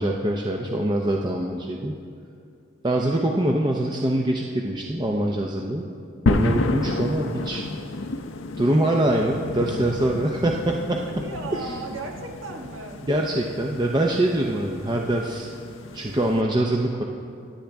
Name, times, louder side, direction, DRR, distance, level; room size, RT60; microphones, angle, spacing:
voice 1, 0.0-1.9 2.8-5.9 6.3-7.7 8.6-11.1 11.6-11.8 13.1-15.5 15.9-17.0, right 1 dB, 25° right, 0 dB, 0.7 m, -24 dB
sound 1, 6.3-16.4, left 2 dB, 70° left, 0.6 m, -30 dB
voice 2, 11.1-13.1, right 3 dB, 90° right, 2 dB, 1.5 m, -36 dB
25.5 x 8.7 x 3.5 m, 2.4 s
head